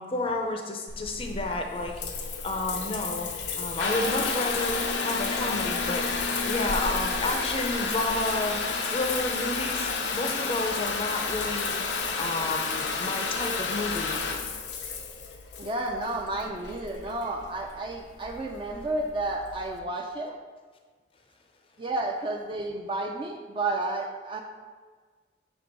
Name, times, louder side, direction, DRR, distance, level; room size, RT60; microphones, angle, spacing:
voice 1, 0.0-1.9 2.4-6.1 6.4-8.6 8.9-11.8 12.2-14.2, left 2 dB, 30° left, 3 dB, 0.5 m, -31 dB
Water tap faucet / Bathtub (filling or washing) / Trickle dribble, 0.9-19.8, left 4 dB, 80° left, 0.6 m, -31 dB
voice 2, 15.6-20.4 21.8-24.4, right 2 dB, 30° right, 1 dB, 0.4 m, -31 dB
6.1 x 3.3 x 5.1 m, 1.5 s
head